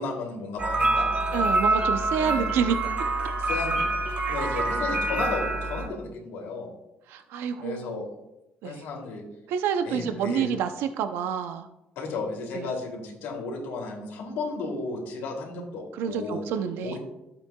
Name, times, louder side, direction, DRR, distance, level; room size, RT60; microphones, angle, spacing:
voice 1, 0.0-1.4 2.2-2.5 3.4-3.8 4.1-6.7 7.6-8.1 8.6-9.2 9.8-10.5 12.0-16.4 16.8-17.0, left 3 dB, 85° left, -1 dB, 2.8 m, -34 dB
sound 1, 0.6-5.9, right 2 dB, 35° right, 2.9 m, -26 dB
voice 2, 1.3-2.8 4.4-4.6 7.1-8.1 8.6-8.8 9.5-11.7 12.5-12.7 15.9-17.0, right 7 dB, 80° right, 8 dB, 0.6 m, -28 dB
12.5 x 8.3 x 2.3 m, 0.89 s
cardioid pair, 135°, 4 cm